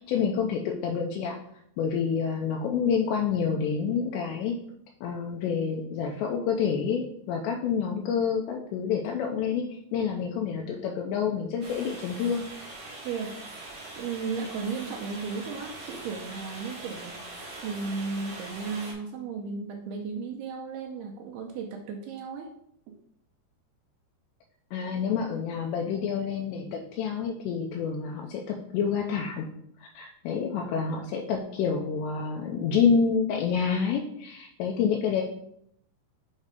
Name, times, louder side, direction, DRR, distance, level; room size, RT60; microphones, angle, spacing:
voice 1, 0.1-1.4 1.8-4.5 5.0-9.6 9.9-12.4 24.7-29.5 29.8-35.2, left 6 dB, 85° left, 1 dB, 2.8 m, -28 dB
sound 1, 11.6-18.9, right 2 dB, 65° right, 1.0 m, -42 dB
voice 2, 13.1-13.4 14.0-22.5 22.9-23.0, right 5 dB, 80° right, 1 dB, 2.3 m, -35 dB
7.3 x 3.2 x 5.1 m, 0.72 s
omnidirectional pair, 5.1 m